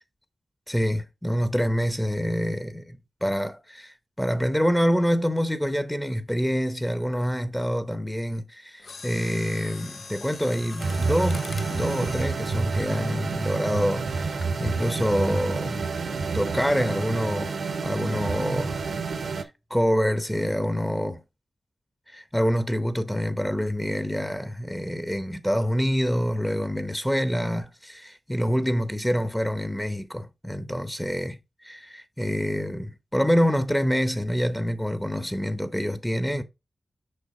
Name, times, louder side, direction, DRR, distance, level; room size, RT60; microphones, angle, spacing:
voice 1, 0.7-15.9 16.3-17.6 17.8-18.8 19.4-21.2 22.1-36.4, equal, 5° left, 0.8 m, -26 dB
Mechanisms, 8.8-13.8 14.4-14.6 15.2-15.6 15.9-16.0, left 4 dB, 70° left, 0.5 m, -43 dB
sound 1, 10.8-19.4, right 4 dB, 80° right, 0.9 m, -28 dB
6.6 x 5.0 x 3.8 m
wide cardioid pair, 90°, 0 cm